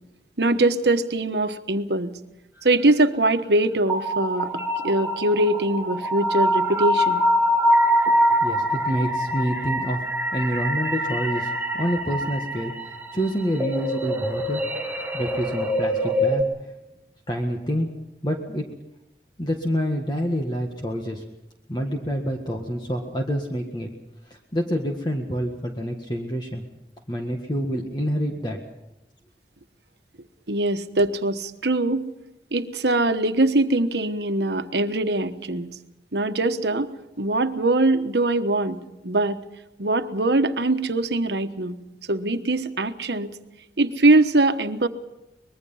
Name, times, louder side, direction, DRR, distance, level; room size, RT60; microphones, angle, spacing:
voice 1, 0.4-2.1 2.6-4.5 4.8-7.2 30.5-32.1 32.5-35.8 36.1-36.9 37.2-38.8 39.0-39.4 39.8-41.8 42.1-43.4 43.8-44.9, right 2 dB, 75° right, 9 dB, 1.3 m, -22 dB
sound 1, 3.9-16.4, equal, 10° right, 1.4 m, -24 dB
voice 2, 8.4-10.0 10.3-12.7 13.1-14.7 15.1-16.5 17.3-17.9 18.2-18.7 19.4-21.2 21.7-23.9 24.3-26.6 27.1-28.6, equal, 25° left, 2 dB, 1.6 m, -27 dB
24.5 x 21.0 x 5.7 m, 0.92 s
head